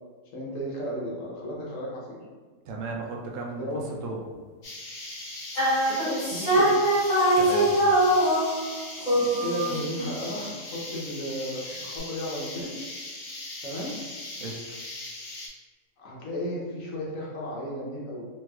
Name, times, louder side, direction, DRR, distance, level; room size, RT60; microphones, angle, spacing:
voice 1, 0.3-2.2 3.6-4.0 5.8-6.7 9.0-12.7 13.6-13.9 16.0-18.2, left 1 dB, 75° left, -4 dB, 1.2 m, -34 dB
voice 2, 2.7-3.7 4.0-4.2 7.4-7.8 14.4-14.8, right 2 dB, 75° right, 0 dB, 0.9 m, -35 dB
sound 1, 4.6-15.5, left 2 dB, 45° left, 0.4 m, -39 dB
sound 2, 5.6-8.8 9.1-10.2, right 1 dB, 25° left, 1.3 m, -22 dB
3.2 x 3.0 x 2.3 m, 1.4 s
omnidirectional pair, 1.4 m